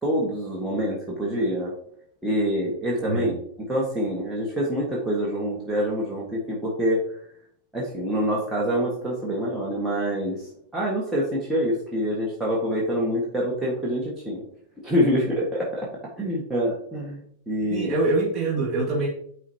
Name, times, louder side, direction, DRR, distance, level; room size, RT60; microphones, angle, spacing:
voice 1, 0.0-1.7 2.2-3.3 3.7-7.0 7.7-10.4 10.7-14.4 14.8-15.9 16.2-17.2 17.5-17.9, equal, 5° right, -5 dB, 1.6 m, -26 dB
voice 2, 17.7-19.1, right 3 dB, 25° right, -4 dB, 2.0 m, -24 dB
9.2 x 4.1 x 2.9 m, 0.65 s
figure-of-eight pair, 90°, 0 cm